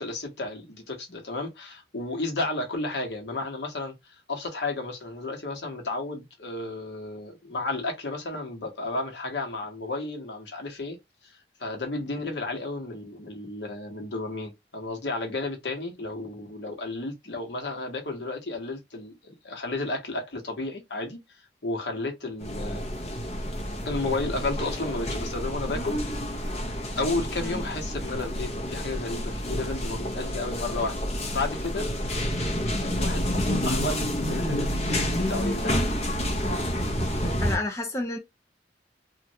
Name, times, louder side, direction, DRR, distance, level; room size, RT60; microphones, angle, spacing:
voice 1, 0.0-11.0 11.2-21.2 21.6-22.8 23.8-26.0 27.0-31.0 31.3-31.9 32.8-35.9 36.3-36.4 37.2-37.4, left 2 dB, 75° left, 1.1 m, -33 dB
sound 1, 22.4-37.6, equal, 40° left, 0.8 m, -29 dB
voice 2, 37.4-38.2, left 2 dB, 15° left, 0.5 m, -30 dB
3.1 x 2.5 x 2.7 m
head